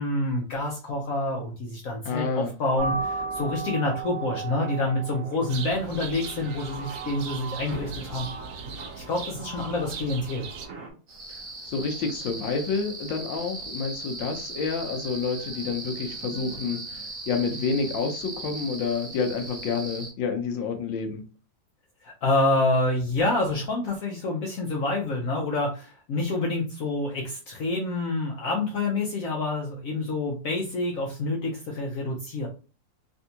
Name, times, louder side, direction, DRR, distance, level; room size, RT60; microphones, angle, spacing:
voice 1, 0.0-8.3 9.0-10.5 22.0-32.5, left 2 dB, 65° left, 0 dB, 0.8 m, -27 dB
voice 2, 2.0-2.5 11.3-21.2, left 5 dB, 85° left, 5 dB, 1.4 m, -29 dB
sound 1, 2.8-10.9, right 4 dB, 60° right, 0.9 m, -36 dB
sound 2, 5.5-10.7, right 5 dB, 80° right, 1.3 m, -40 dB
sound 3, 11.1-20.1, right 3 dB, 35° right, 1.3 m, -38 dB
3.5 x 2.5 x 2.7 m, 0.34 s
omnidirectional pair, 2.0 m